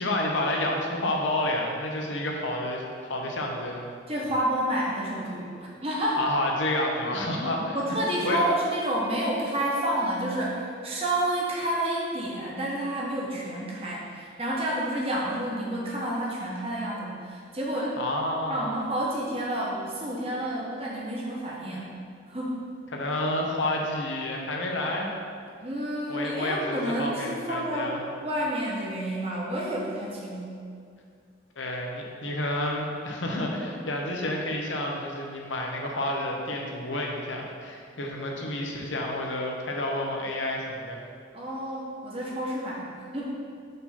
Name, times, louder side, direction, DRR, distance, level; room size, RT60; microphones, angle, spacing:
voice 1, 0.0-3.9 6.2-7.8 8.1-8.4 18.0-18.7 22.9-25.1 26.1-28.0 31.6-41.0, left 1 dB, 80° left, 0 dB, 1.0 m, -30 dB
voice 2, 4.1-6.2 7.7-18.0 18.5-21.9 22.3-22.6 25.6-30.6 41.3-43.3, right 1 dB, 30° right, -4 dB, 1.2 m, -29 dB
5.2 x 4.2 x 5.8 m, 2.2 s
head